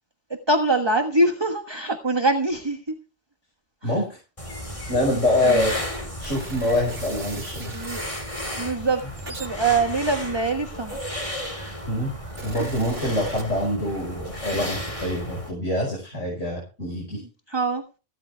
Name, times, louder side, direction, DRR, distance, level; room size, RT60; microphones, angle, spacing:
voice 1, 0.5-2.9 3.8-4.0 5.4-5.7 7.6-8.0 8.6-11.1 12.6-12.7 17.2-17.8, right 2 dB, 20° right, 5 dB, 1.4 m, -24 dB
voice 2, 3.8-4.2 4.9-5.8 6.2-7.7 11.9-12.1 12.4-17.2, left 1 dB, 80° left, -1 dB, 5.7 m, -25 dB
sound 1, 4.4-15.5, equal, 25° left, 4.3 m, -34 dB
sound 2, 6.2-8.1 8.9-11.2 11.9-13.9 14.2-14.5, right 2 dB, 85° right, 3.6 m, -40 dB
15.5 x 13.5 x 3.4 m, 0.33 s
omnidirectional pair, 1.2 m